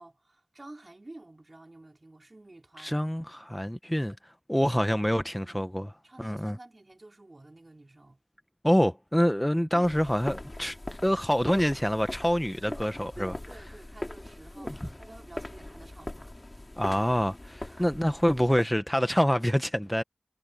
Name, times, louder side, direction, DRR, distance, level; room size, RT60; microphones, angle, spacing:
voice 1, 0.0-3.0 5.1-5.6 6.0-8.2 9.7-10.5 12.5-16.3 17.7-17.9, right 2 dB, 50° right, 4.7 m, -50 dB
voice 2, 2.8-4.1 4.5-6.6 8.6-10.8 11.0-13.3 14.6-14.8 16.8-20.0, equal, 5° left, 0.9 m, -26 dB
sound 1, 9.8-18.6, left 1 dB, 40° left, 3.3 m, -41 dB
wide cardioid pair, 40°, 0 cm